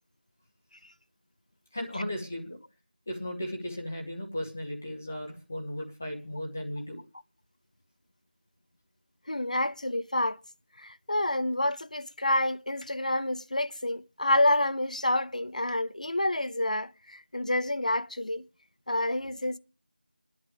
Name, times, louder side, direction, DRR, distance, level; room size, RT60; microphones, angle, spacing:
voice 1, 1.7-2.6 3.1-7.0, left 1 dB, 10° left, 1.1 m, -36 dB
voice 2, 9.3-10.4 10.8-18.4 18.9-19.6, left 1 dB, 50° left, 0.6 m, -28 dB
21.0 x 11.0 x 3.4 m
figure-of-eight pair, 180°, 5 cm